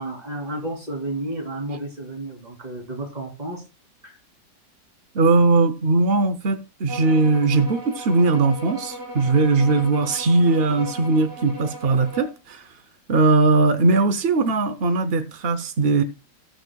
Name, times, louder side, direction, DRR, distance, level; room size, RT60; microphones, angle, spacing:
voice 1, 0.0-3.6 4.0-4.2, right 1 dB, 20° right, 3.0 m, -32 dB
voice 2, 5.1-12.7 13.1-16.0, right 3 dB, 65° right, 0.5 m, -19 dB
sound 1, 6.9-12.4, right 1 dB, 50° right, 3.0 m, -37 dB
18.0 x 6.4 x 2.2 m
omnidirectional pair, 2.0 m